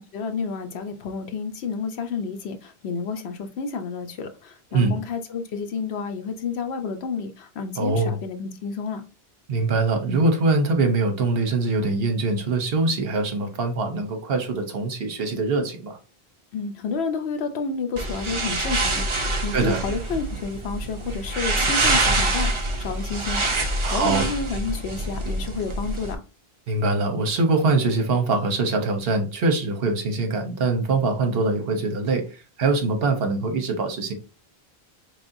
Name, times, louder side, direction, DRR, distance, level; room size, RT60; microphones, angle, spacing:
voice 1, 0.1-9.0 16.5-26.2, left 4 dB, 85° left, 0.9 m, -30 dB
voice 2, 7.8-8.2 9.5-16.0 19.5-19.8 23.8-24.2 26.7-34.1, right 3 dB, 70° right, 1.0 m, -23 dB
sound 1, 18.0-26.2, right 2 dB, 35° right, 0.5 m, -25 dB
4.2 x 3.3 x 2.6 m
omnidirectional pair, 1.0 m